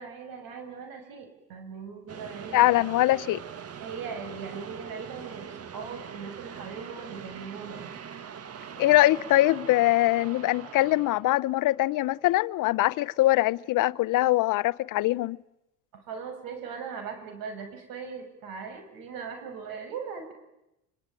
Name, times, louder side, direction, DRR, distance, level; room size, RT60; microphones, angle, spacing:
voice 1, 0.0-2.7 3.8-7.9 15.9-20.3, right 6 dB, 65° right, 6.5 m, -39 dB
sound 1, 2.1-12.3, right 7 dB, 40° right, 2.2 m, -43 dB
voice 2, 2.5-3.4 8.8-15.4, left 16 dB, 60° left, 0.9 m, -23 dB
25.0 x 25.0 x 9.2 m
supercardioid pair, 90°, 36 cm